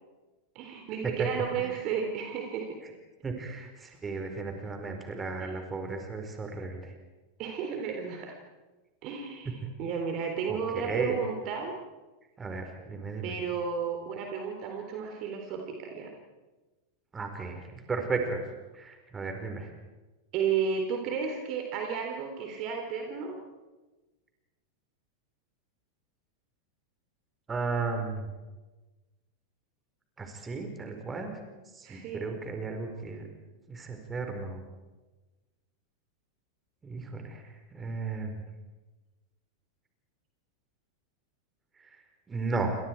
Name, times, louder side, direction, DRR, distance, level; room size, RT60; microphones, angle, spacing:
voice 1, 0.6-2.8 5.4-5.6 7.4-8.4 9.0-11.7 13.2-16.1 20.3-23.4 31.8-32.3, right 6 dB, 40° right, 3 dB, 3.7 m, -33 dB
voice 2, 3.2-6.9 9.4-9.6 10.5-11.2 12.4-13.3 17.1-18.4 18.7-19.7 27.5-28.3 30.2-31.3 31.7-33.3 33.7-34.6 36.8-37.4 37.7-38.4 41.8-41.9 42.3-42.8, right 4 dB, 15° right, 4 dB, 4.8 m, -34 dB
29.0 x 26.0 x 4.8 m, 1.2 s
figure-of-eight pair, 90°, 0 cm